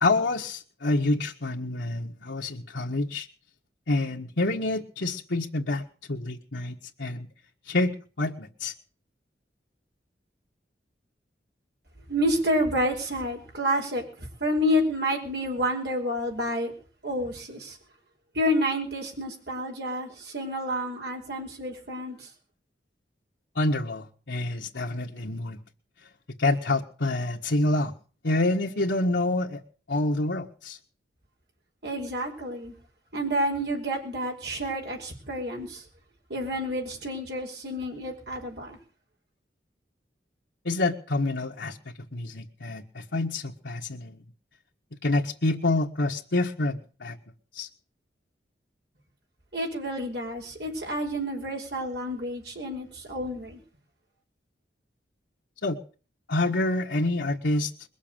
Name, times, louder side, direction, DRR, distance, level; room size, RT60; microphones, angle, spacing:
voice 1, 0.0-3.3 3.9-7.3 7.7-8.7 23.5-25.6 26.4-27.9 28.2-29.6 29.9-30.8 40.6-44.2 45.0-47.2 47.5-47.7 55.6-55.8 56.3-57.7, left 2 dB, 85° left, 0 dB, 1.6 m, -27 dB
voice 2, 12.1-16.7 17.0-17.8 18.3-22.3 31.8-32.7 33.1-35.8 36.3-38.8 49.5-53.6, equal, 65° right, 1 dB, 5.3 m, -29 dB
21.5 x 7.3 x 8.9 m, 0.41 s
head